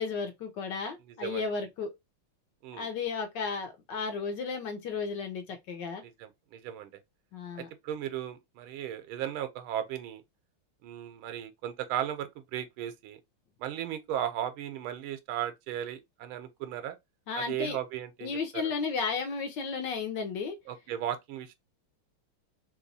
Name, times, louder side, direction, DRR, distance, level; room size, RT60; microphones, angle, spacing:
voice 1, 0.0-1.9 2.8-6.0 7.3-7.7 17.3-17.8 18.2-20.6, left 5 dB, 70° left, 1.2 m, -33 dB
voice 2, 1.1-1.4 2.6-2.9 6.0-6.9 7.6-10.2 10.8-13.2 13.6-17.0 17.3-18.7 20.7-21.6, right 11 dB, 85° right, 1.5 m, -36 dB
3.4 x 3.0 x 2.6 m
omnidirectional pair, 2.3 m